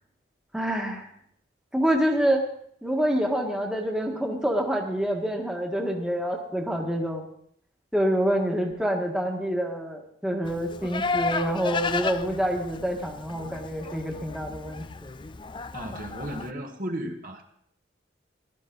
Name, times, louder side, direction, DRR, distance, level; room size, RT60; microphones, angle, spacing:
voice 1, 0.5-1.1 1.7-2.4 2.8-7.3 7.9-14.8, equal, 5° right, 0 dB, 1.6 m, -27 dB
Livestock farm animals working animals, 10.4-16.5, left 4 dB, 25° left, 0.5 m, -33 dB
voice 2, 15.7-17.4, right 1 dB, 45° right, 3 dB, 1.6 m, -34 dB
16.0 x 12.5 x 4.0 m, 0.65 s
head